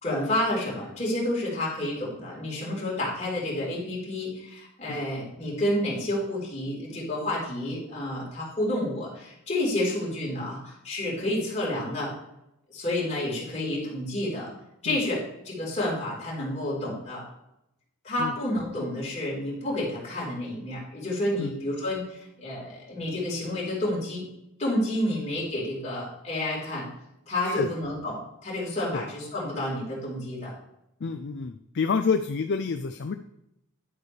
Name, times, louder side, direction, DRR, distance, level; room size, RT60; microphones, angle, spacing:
voice 1, 0.0-12.1 12.7-14.5 14.8-17.2 18.0-24.3 24.6-26.9 27.3-30.5, left 1 dB, 30° left, -5 dB, 4.0 m, -30 dB
voice 2, 31.0-33.1, left 5 dB, 50° left, 8 dB, 0.4 m, -28 dB
11.0 x 8.6 x 3.3 m, 0.84 s
head